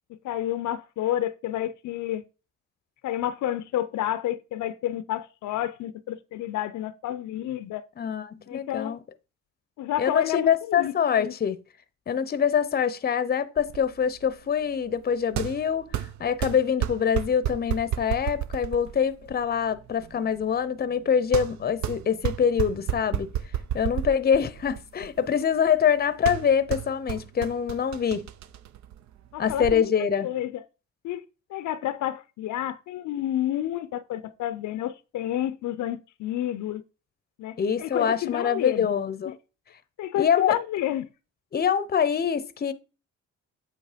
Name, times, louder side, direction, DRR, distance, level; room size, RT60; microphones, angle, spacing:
voice 1, 0.1-2.2 3.0-7.8 8.5-9.0 9.8-10.5 10.8-11.3 29.3-29.9 30.2-30.6 31.0-31.2 31.5-36.8 37.4-38.9 40.0-41.1, left 12 dB, 75° left, 0.6 m, -30 dB
voice 2, 8.0-9.0 10.0-11.6 12.1-23.3 23.7-28.3 29.4-30.3 37.6-39.3 40.2-40.6 41.5-42.7, left 7 dB, 35° left, 0.7 m, -25 dB
sound 1, 13.6-29.7, right 11 dB, 70° right, 0.6 m, -33 dB
8.1 x 3.2 x 5.0 m
cardioid pair, 90°, 30 cm